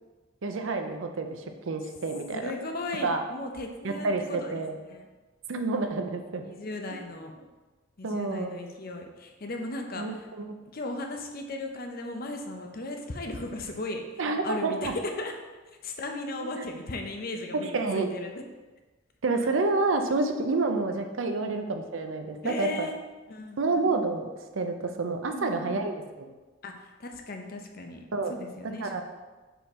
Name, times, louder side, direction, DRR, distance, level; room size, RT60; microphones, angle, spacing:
voice 1, 0.4-2.5 3.0-3.2 3.8-4.8 5.5-6.5 8.0-8.6 10.0-10.1 10.5-10.6 14.2-14.9 16.4-16.6 17.5-18.2 19.2-22.9 23.6-26.3 28.1-28.3 28.8-29.0, right 3 dB, 85° right, 6 dB, 0.6 m, -29 dB
voice 2, 2.3-4.6 4.9-5.1 6.4-7.3 8.0-10.3 10.7-15.3 15.8-18.4 21.4-21.5 22.4-23.0 23.3-23.6 25.3-25.8 26.6-28.0 28.3-28.9, left 2 dB, 50° left, 3 dB, 0.7 m, -36 dB
5.5 x 4.2 x 4.3 m, 1.2 s
head